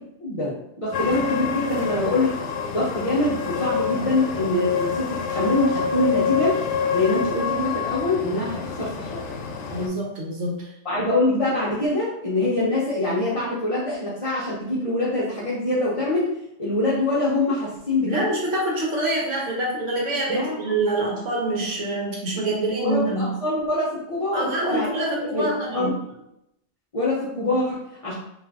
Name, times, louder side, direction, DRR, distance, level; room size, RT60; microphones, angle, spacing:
voice 1, 0.2-2.3 2.7-6.6 6.9-9.3 10.8-16.3 16.6-18.3 20.3-20.6 22.8-24.9 25.3-25.9 26.9-28.1, left 2 dB, 40° left, -7 dB, 0.6 m, -24 dB
sound 1, 0.9-9.9, left 6 dB, 85° left, 0.9 m, -27 dB
voice 2, 9.7-10.7 18.0-23.4 24.3-26.0, right 2 dB, 80° right, -3 dB, 1.2 m, -26 dB
2.6 x 2.4 x 3.4 m, 0.82 s
omnidirectional pair, 1.2 m